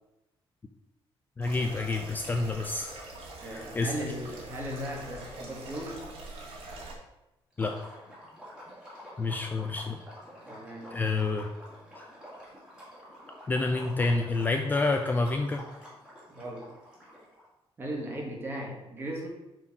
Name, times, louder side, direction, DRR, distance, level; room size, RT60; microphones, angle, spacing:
voice 1, 1.4-2.9 3.5-3.9 7.6-7.7 9.2-10.0 10.9-11.5 13.5-15.6, left 3 dB, 20° left, 4 dB, 0.4 m, -28 dB
sound 1, 1.4-6.9, right 2 dB, 85° right, 2.1 m, -44 dB
voice 2, 3.4-6.0 10.5-11.0 16.3-16.7 17.8-19.3, right 1 dB, 25° right, -1 dB, 1.7 m, -37 dB
Liquid, 7.5-17.4, equal, 10° right, 2.4 m, -48 dB
7.1 x 4.5 x 6.0 m, 0.94 s
cardioid pair, 180°, 10 cm